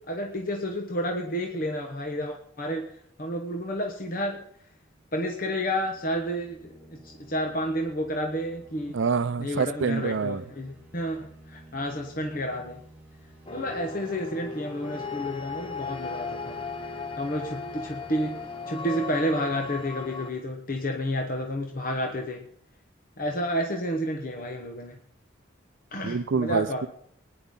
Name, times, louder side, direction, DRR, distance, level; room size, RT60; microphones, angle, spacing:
voice 1, 0.1-4.4 5.1-6.7 7.0-9.0 9.4-12.8 13.5-16.7 17.2-18.4 18.7-22.4 23.2-25.0 25.9-26.9, equal, 45° left, 1.1 m, -30 dB
sound 1, 4.6-19.8, right 1 dB, 10° right, 2.7 m, -52 dB
voice 2, 8.9-10.4 26.0-26.9, right 5 dB, 70° right, 0.5 m, -26 dB
sound 2, 13.5-20.3, left 5 dB, 25° left, 0.8 m, -36 dB
21.0 x 10.0 x 3.8 m
head